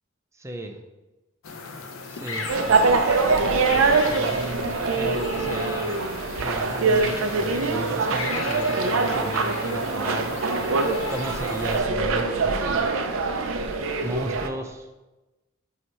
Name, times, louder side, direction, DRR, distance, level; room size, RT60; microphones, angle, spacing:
voice 1, 0.3-0.8 2.1-5.9 6.4-10.3 11.1-12.9 14.0-14.9, right 1 dB, 15° right, 4 dB, 0.5 m, -35 dB
sound 1, 1.4-11.8, left 4 dB, 90° left, 0.7 m, -36 dB
sound 2, 2.5-14.5, right 4 dB, 75° right, 0.5 m, -24 dB
7.6 x 2.8 x 4.4 m, 1.1 s
head